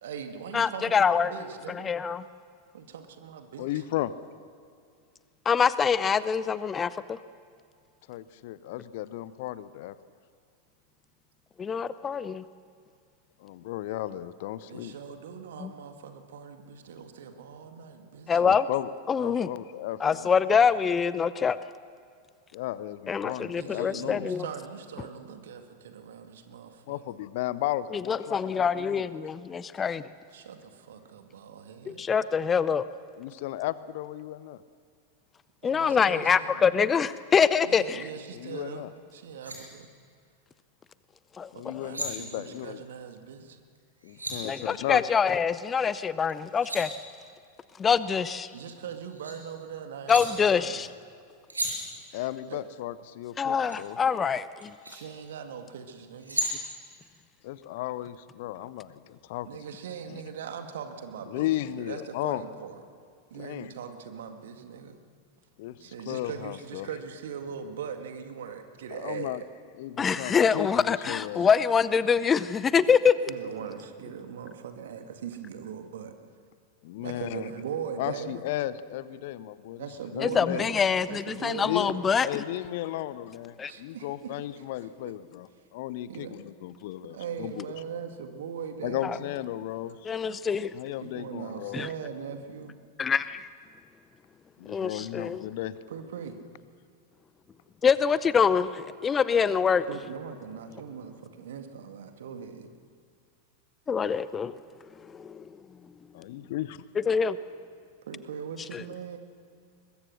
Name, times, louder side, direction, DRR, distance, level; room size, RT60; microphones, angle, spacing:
voice 1, 0.0-1.9 2.7-3.7 14.7-18.4 23.5-27.0 30.3-32.0 35.6-36.9 37.6-39.9 41.5-43.6 48.5-50.8 52.5-52.6 54.9-56.4 59.5-61.5 61.8-62.8 63.3-65.0 65.8-69.4 73.3-76.1 77.0-78.4 79.8-82.0 83.7-84.6 85.0-85.1 86.1-86.4 87.1-89.2 91.0-92.8 95.9-96.4 99.9-102.7 108.1-109.2, right 7 dB, 60° right, 6 dB, 2.0 m, -40 dB
voice 2, 0.5-1.3 1.7-2.2 5.5-7.2 11.6-12.4 15.6-15.7 18.3-18.6 19.1-19.5 20.0-21.6 23.1-24.5 28.1-30.0 31.9-32.8 35.6-38.1 41.4-41.7 44.4-46.9 47.8-48.5 50.1-50.9 53.4-54.7 70.0-73.2 80.2-82.3 83.6-83.7 90.1-90.7 91.7-91.9 93.0-93.5 94.7-95.4 97.8-99.8 103.9-104.6 105.1-105.5 107.1-107.3 108.7-108.8, left 6 dB, 20° left, 16 dB, 0.6 m, -25 dB
voice 3, 3.6-4.1 8.1-10.0 13.4-14.9 18.4-20.3 22.5-24.3 26.9-29.1 33.2-34.6 38.3-38.9 41.5-42.8 44.0-45.0 52.1-54.0 57.4-59.5 60.1-60.2 61.3-62.4 63.3-63.7 65.6-66.9 68.9-69.4 69.7-71.5 76.8-77.5 78.0-79.9 80.1-80.7 81.6-87.6 88.8-90.1 90.7-91.8 94.6-95.8 106.2-106.8, left 14 dB, 50° left, 17 dB, 0.7 m, -35 dB
sound 1, 39.0-39.1 39.3-39.6 41.6-42.1 43.8-44.4 46.3-46.8 48.2-49.3 50.1-50.2 51.5-51.7 53.7-53.8 54.6-55.0 55.9-56.5, right 2 dB, 80° right, 5.7 m, -34 dB
22.5 x 21.5 x 6.5 m, 2.2 s
figure-of-eight pair, 90°, 0 cm